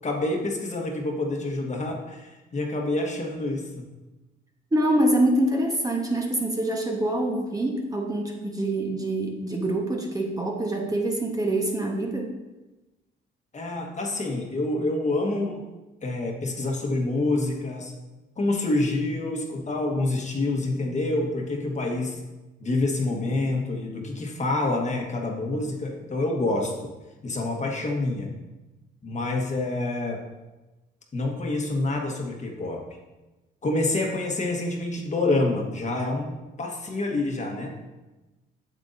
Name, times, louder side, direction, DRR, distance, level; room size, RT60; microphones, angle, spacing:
voice 1, 0.0-3.8 13.5-15.7 16.0-17.9 18.4-22.2 22.6-26.9 27.2-28.3 29.0-30.2 31.1-32.8 33.6-37.7, left 2 dB, 35° left, 1 dB, 1.3 m, -27 dB
voice 2, 4.7-12.3, right 1 dB, 20° right, 1 dB, 1.1 m, -25 dB
8.0 x 7.1 x 2.6 m, 1.1 s
cardioid pair, 90°, 20 cm